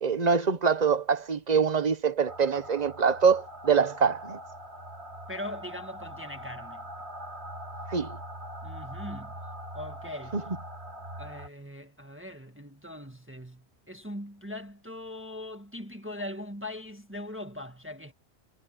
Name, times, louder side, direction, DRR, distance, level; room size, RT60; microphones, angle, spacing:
voice 1, 0.0-4.4 7.9-8.2 10.3-10.4, right 6 dB, 40° right, 1.1 m, -24 dB
sound 1, 2.3-11.5, equal, 80° right, 3.2 m, -42 dB
voice 2, 5.3-6.9 8.6-9.4 9.7-10.5 11.2-18.1, left 1 dB, 10° right, 1.7 m, -40 dB
omnidirectional pair, 1.1 m